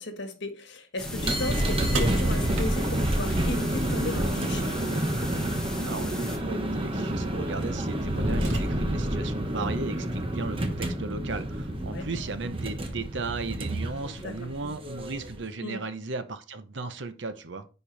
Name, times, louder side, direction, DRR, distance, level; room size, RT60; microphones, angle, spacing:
voice 1, 0.0-4.7 11.8-12.1 14.2-14.3 15.6-15.8, left 2 dB, 65° left, 1.6 m, -35 dB
sound 1, 1.0-6.4, left 1 dB, 5° left, 1.2 m, -39 dB
sound 2, 1.0-15.4, right 1 dB, 30° right, 1.1 m, -29 dB
sound 3, 1.9-4.1 6.0-6.1 6.9-7.1 7.6-9.1, right 1 dB, 85° right, 2.0 m, -33 dB
voice 2, 5.9-17.7, right 3 dB, 70° right, 0.8 m, -36 dB
10.0 x 4.5 x 3.3 m
head